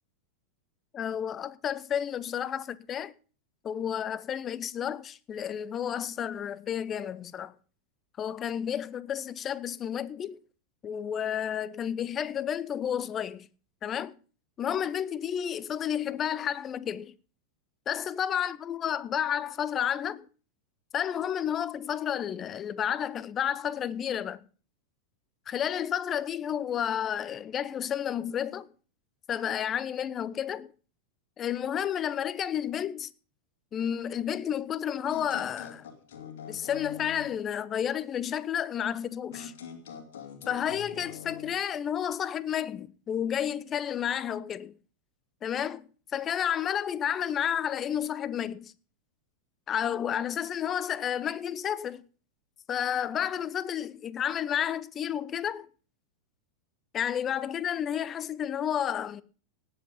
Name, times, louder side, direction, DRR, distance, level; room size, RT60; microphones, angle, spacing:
voice 1, 0.9-3.1 3.6-7.5 8.2-10.4 10.8-13.5 13.8-14.1 14.6-17.1 17.9-20.3 20.9-24.4 25.5-28.7 29.3-30.7 31.4-33.1 33.7-35.9 36.5-39.5 40.5-44.7 45.4-48.7 49.7-52.0 52.7-55.7 56.9-59.2, left 9 dB, 25° left, 0.7 m, -31 dB
sound 1, 35.1-37.4 39.3-41.6, left 7 dB, 55° left, 2.6 m, -44 dB
18.0 x 8.0 x 5.3 m
figure-of-eight pair, 90°, 0 cm